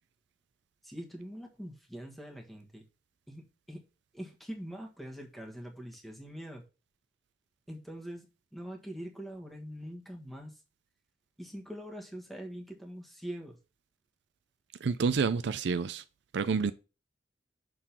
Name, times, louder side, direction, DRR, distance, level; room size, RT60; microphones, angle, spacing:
voice 1, 0.8-2.8 3.3-3.8 4.1-6.6 7.7-10.6 11.4-13.6, equal, ahead, 1.4 m, -43 dB
voice 2, 14.8-16.0 16.3-16.7, right 5 dB, 65° right, 0.4 m, -28 dB
6.5 x 3.8 x 5.8 m
head